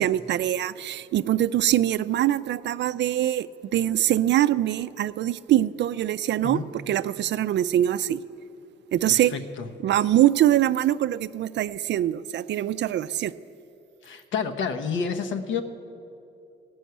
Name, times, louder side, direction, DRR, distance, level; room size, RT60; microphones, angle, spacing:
voice 1, 0.0-8.2 8.9-9.3 9.8-13.3, right 12 dB, 65° right, 0.4 m, -23 dB
voice 2, 9.1-9.7 14.0-15.6, left 6 dB, 75° left, 1.0 m, -29 dB
15.5 x 6.3 x 9.4 m
cardioid pair, 90°, 20 cm